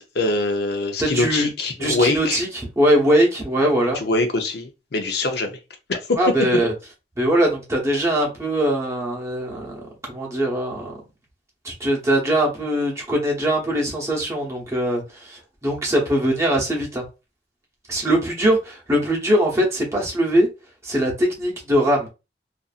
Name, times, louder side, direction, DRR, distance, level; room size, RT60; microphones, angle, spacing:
voice 1, 0.1-2.4 3.9-5.6 5.9-6.2, left 2 dB, 65° left, 0.5 m, -23 dB
voice 2, 1.0-1.5 1.8-2.5 2.7-4.0 6.2-6.7 7.2-10.9 11.6-17.0 17.9-20.5 20.8-22.1, equal, 15° right, 0.8 m, -21 dB
2.5 x 2.5 x 2.4 m
head